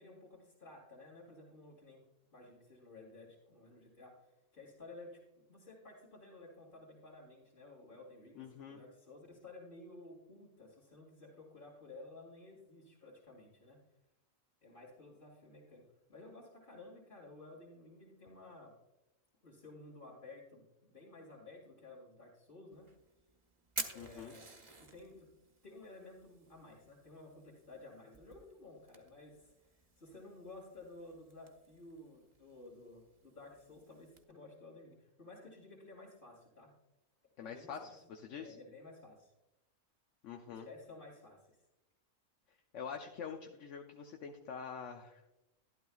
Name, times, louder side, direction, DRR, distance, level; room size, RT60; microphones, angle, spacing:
voice 1, 0.0-2.0 2.3-5.2 5.5-13.8 14.6-18.8 19.4-22.9 23.9-24.5 24.8-25.3 25.6-36.7 37.4-37.9 38.4-39.3 40.5-41.6, left 2 dB, 40° left, -6 dB, 2.6 m, -54 dB
voice 2, 8.4-8.8 23.9-24.3 37.4-38.6 40.2-40.7 42.7-45.2, left 6 dB, 70° left, 3 dB, 1.1 m, -46 dB
Fire, 22.7-34.2, right 3 dB, 25° right, 0.8 m, -51 dB
12.0 x 12.0 x 2.4 m, 0.96 s
omnidirectional pair, 1.3 m